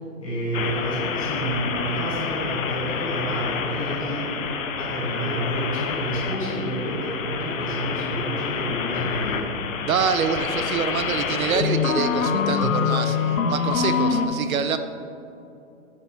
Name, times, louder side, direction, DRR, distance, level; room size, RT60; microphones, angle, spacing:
voice 1, 0.2-4.3 4.8-9.6, right 1 dB, 25° left, -6 dB, 1.6 m, -29 dB
sound 1, 0.5-14.3, left 6 dB, 65° left, 0.6 m, -27 dB
voice 2, 9.8-14.8, right 6 dB, 70° right, 10 dB, 0.5 m, -26 dB
8.1 x 7.1 x 3.0 m, 2.8 s
hypercardioid pair, 175°, 44 cm